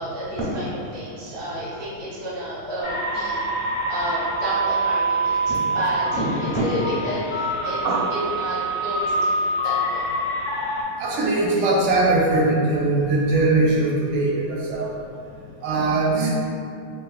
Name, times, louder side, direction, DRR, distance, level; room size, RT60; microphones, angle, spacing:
voice 1, 0.0-3.4 3.9-7.8 8.1-10.0, equal, 30° right, -10 dB, 0.5 m, -29 dB
sound 1, 2.8-10.8, right 2 dB, 70° left, 1.6 m, -25 dB
voice 2, 7.6-8.1 11.0-14.9 15.6-16.3, right 2 dB, 85° right, -4 dB, 1.4 m, -21 dB
3.7 x 2.7 x 2.3 m, 2.5 s
omnidirectional pair, 2.3 m